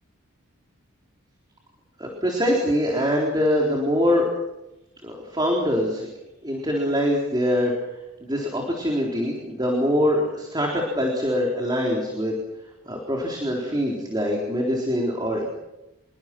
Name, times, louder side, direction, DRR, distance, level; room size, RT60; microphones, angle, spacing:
voice 1, 2.0-4.3 5.0-6.1 6.4-7.7 8.2-12.3 12.9-15.4, equal, 20° right, -1 dB, 4.0 m, -23 dB
27.0 x 23.5 x 6.2 m, 0.96 s
head